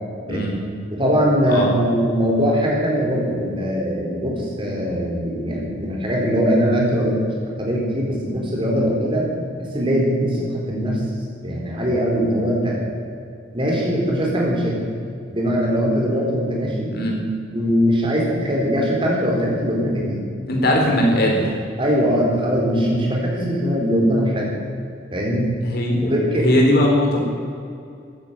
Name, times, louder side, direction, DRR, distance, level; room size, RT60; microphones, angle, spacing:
voice 1, 0.9-7.2 7.6-9.3 9.6-11.0 11.4-12.8 13.5-14.8 15.3-16.9 17.5-20.2 21.8-24.6 25.1-25.5 26.0-26.5, equal, 25° right, -2 dB, 4.1 m, -21 dB
voice 2, 16.9-17.2 20.5-21.5 25.6-27.2, left 1 dB, 50° left, 0 dB, 3.9 m, -19 dB
14.5 x 10.5 x 8.9 m, 2.4 s
head